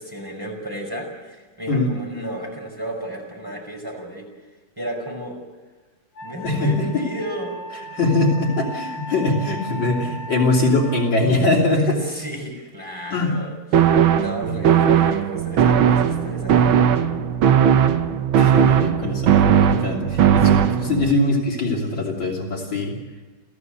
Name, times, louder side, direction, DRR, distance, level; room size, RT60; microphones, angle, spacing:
voice 1, 0.0-4.3 4.8-5.4 6.2-7.6 11.7-16.8, right 1 dB, 10° right, 0 dB, 5.6 m, -33 dB
Wind instrument woodwind instrument, 6.2-11.0, equal, 85° left, 2.9 m, -36 dB
voice 2, 6.4-7.0 7.9-11.9 13.1-13.3 14.5-14.8 18.4-23.0, left 2 dB, 60° left, -1 dB, 3.9 m, -22 dB
sound 1, 13.7-21.1, right 8 dB, 70° right, 1.8 m, -17 dB
29.0 x 16.0 x 8.2 m, 1.3 s
omnidirectional pair, 2.4 m